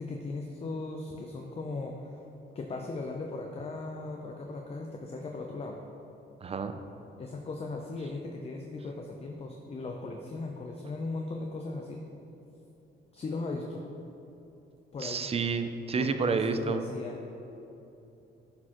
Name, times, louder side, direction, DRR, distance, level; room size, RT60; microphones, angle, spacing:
voice 1, 0.0-2.2 2.5-5.8 7.2-12.0 13.1-13.8 14.9-15.3 16.0-17.2, left 3 dB, 30° left, 2 dB, 0.5 m, -38 dB
voice 2, 6.4-6.7 15.0-16.8, right 5 dB, 30° right, 8 dB, 0.4 m, -29 dB
10.5 x 4.3 x 3.0 m, 2.9 s
cardioid pair, 90°, 20 cm